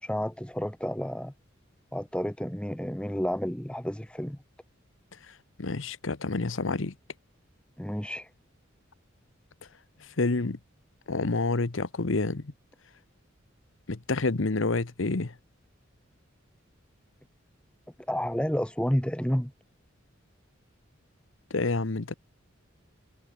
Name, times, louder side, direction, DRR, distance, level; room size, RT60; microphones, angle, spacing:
voice 1, 0.0-1.3 1.9-4.4 7.8-8.3 18.1-19.5, equal, 5° left, 1.6 m, -30 dB
voice 2, 5.3-6.9 10.0-10.6 11.1-12.5 13.9-15.3 21.5-22.1, left 3 dB, 70° left, 1.0 m, -28 dB
head